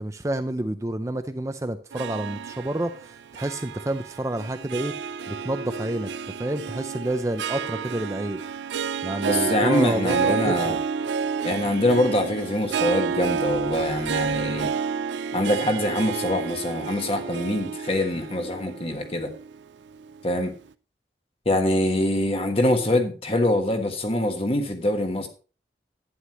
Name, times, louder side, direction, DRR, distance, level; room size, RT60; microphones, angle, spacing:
voice 1, 0.0-6.1 6.4-8.4 9.0-10.8, right 1 dB, 15° right, 8 dB, 0.5 m, -29 dB
Harp, 1.9-20.4, right 6 dB, 90° right, 0.5 m, -30 dB
voice 2, 9.3-10.8 11.4-14.7 15.3-19.3 20.2-20.5 21.4-25.3, left 1 dB, 30° left, 5 dB, 1.4 m, -24 dB
11.5 x 9.4 x 3.0 m, 0.37 s
head